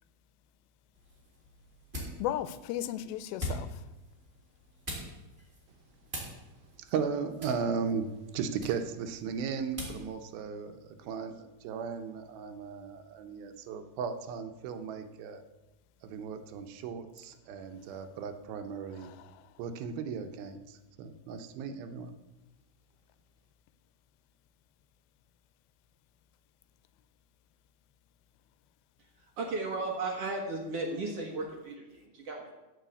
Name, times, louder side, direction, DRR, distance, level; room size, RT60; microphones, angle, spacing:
sound 1, 0.9-10.1, equal, 15° right, 3.5 m, -44 dB
voice 1, 2.2-3.8 19.0-19.5, left 12 dB, 85° left, 2.4 m, -36 dB
voice 2, 6.8-8.1 8.3-15.4 16.0-19.1 19.6-22.1, right 6 dB, 80° right, 2.6 m, -36 dB
voice 3, 29.2-32.5, right 3 dB, 55° right, 1.8 m, -35 dB
14.0 x 4.9 x 8.1 m
omnidirectional pair, 4.4 m